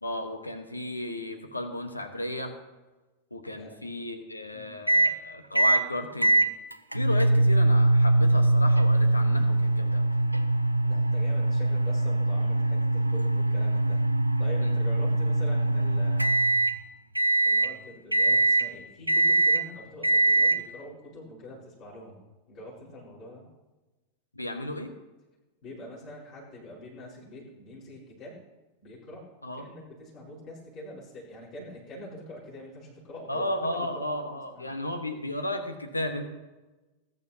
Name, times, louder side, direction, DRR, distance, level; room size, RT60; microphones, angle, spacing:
voice 1, 0.0-2.5 3.3-6.4 6.9-10.1 14.6-14.8 24.3-24.9 29.4-29.7 33.3-36.2, left 1 dB, 80° left, 8 dB, 1.4 m, -34 dB
sound 1, 4.9-5.1 5.6-5.8 6.2-16.8 17.2-17.7 18.1-18.7 19.1-19.6 20.0-20.6, right 2 dB, 85° right, 0.6 m, -22 dB
voice 2, 10.8-14.1 14.4-16.5 17.4-22.2 22.5-23.4 25.6-28.4 28.8-29.2 29.6-34.1 34.5-34.7, left 1 dB, 35° left, -6 dB, 5.1 m, -45 dB
20.5 x 10.5 x 2.9 m, 1.1 s
figure-of-eight pair, 90°, 0 cm